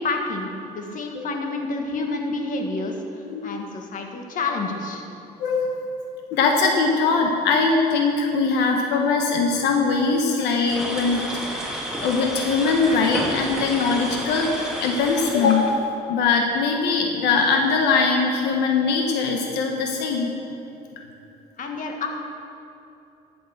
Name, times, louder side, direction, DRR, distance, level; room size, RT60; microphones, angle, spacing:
voice 1, 0.0-2.9 3.4-5.0 21.6-22.1, left 3 dB, 50° left, 3 dB, 1.7 m, -28 dB
voice 2, 5.4-5.7 6.3-11.6 12.0-14.5 14.8-20.3, left 4 dB, 85° left, 2 dB, 1.2 m, -21 dB
sound 1, 10.7-15.8, equal, 5° right, 2.5 m, -31 dB
13.5 x 7.0 x 6.6 m, 2.9 s
cardioid pair, 110°, 17 cm